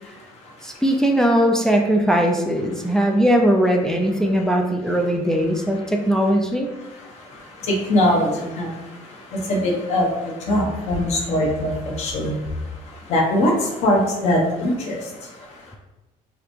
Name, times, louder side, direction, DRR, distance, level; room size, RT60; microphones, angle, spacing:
voice 1, 0.0-0.8 2.8-3.0 5.7-5.9 6.8-15.8, left 1 dB, 50° left, 0 dB, 1.1 m, -23 dB
voice 2, 0.6-6.7, equal, 5° left, 1 dB, 0.3 m, -19 dB
4.9 x 3.4 x 3.2 m, 1.1 s
cardioid pair, 170°, 15 cm